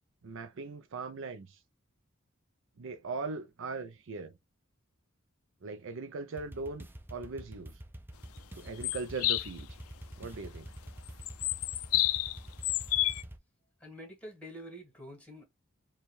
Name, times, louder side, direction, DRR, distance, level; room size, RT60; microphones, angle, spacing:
voice 1, 0.2-1.6 2.8-4.3 5.6-7.8 8.5-9.7 10.2-10.7, right 4 dB, 60° right, 0.5 m, -40 dB
sound 1, 6.4-13.4, right 1 dB, 10° right, 0.4 m, -47 dB
sound 2, 8.8-9.5 11.2-12.4 12.6-13.2, left 16 dB, 80° left, 0.3 m, -29 dB
voice 2, 13.8-15.4, equal, 5° left, 1.8 m, -47 dB
4.4 x 2.4 x 3.1 m
head